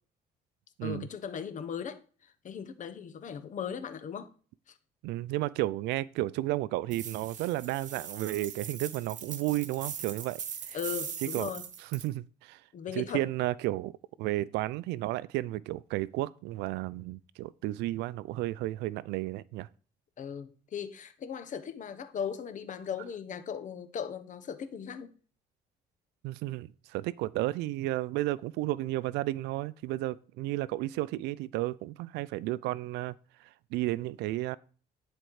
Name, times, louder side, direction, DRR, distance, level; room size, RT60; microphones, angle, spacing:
voice 1, 0.8-4.3 4.7-4.8 10.7-11.7 12.7-13.2 20.2-25.1, left 7 dB, 50° left, 1.2 m, -38 dB
voice 2, 5.0-10.8 11.3-11.5 11.9-12.6 12.9-13.9 14.2-19.7 26.2-33.2 33.4-34.6, right 17 dB, 85° right, 0.4 m, -33 dB
sound 1, 6.9-12.1, right 8 dB, 50° right, 1.1 m, -40 dB
10.5 x 4.4 x 4.8 m
cardioid pair, 110°, 17 cm